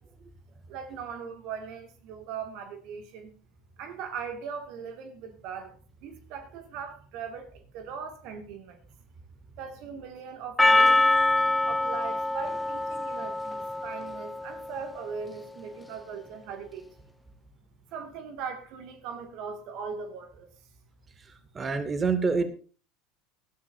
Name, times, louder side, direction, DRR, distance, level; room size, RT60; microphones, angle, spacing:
voice 1, 0.7-3.3 3.8-8.8 9.6-11.0 11.6-17.0 17.9-20.5, right 6 dB, 55° right, 2.2 m, -39 dB
Percussion, 10.6-14.9, left 2 dB, 10° left, 0.6 m, -25 dB
voice 2, 21.5-22.5, right 4 dB, 25° right, 2.3 m, -26 dB
20.0 x 12.5 x 2.7 m
hypercardioid pair, 75°, 0 cm